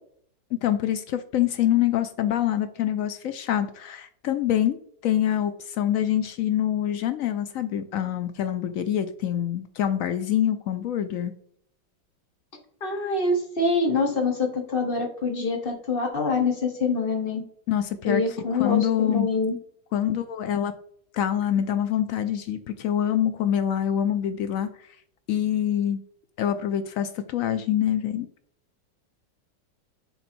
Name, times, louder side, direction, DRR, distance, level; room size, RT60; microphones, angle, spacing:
voice 1, 0.6-4.8 5.0-11.3 17.7-19.3 19.9-20.7 21.1-24.7 25.3-26.0 26.4-28.3, left 10 dB, 75° left, 10 dB, 0.7 m, -25 dB
voice 2, 12.8-17.4 18.0-19.6, left 3 dB, 35° left, 4 dB, 1.1 m, -25 dB
7.0 x 4.2 x 4.3 m, 0.63 s
omnidirectional pair, 2.0 m